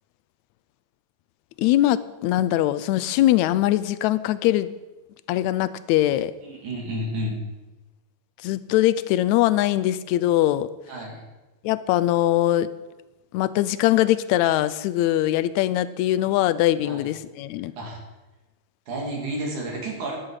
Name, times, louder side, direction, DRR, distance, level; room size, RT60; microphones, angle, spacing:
voice 1, 1.6-4.7 5.3-6.3 8.4-10.7 11.6-12.7 13.3-17.7, left 14 dB, 80° left, 15 dB, 1.8 m, -22 dB
voice 2, 6.4-7.4 10.9-11.2 16.8-17.0 17.8-18.0 18.9-20.2, right 1 dB, 80° right, -2 dB, 4.1 m, -31 dB
13.5 x 11.0 x 4.9 m, 1.1 s
omnidirectional pair, 3.4 m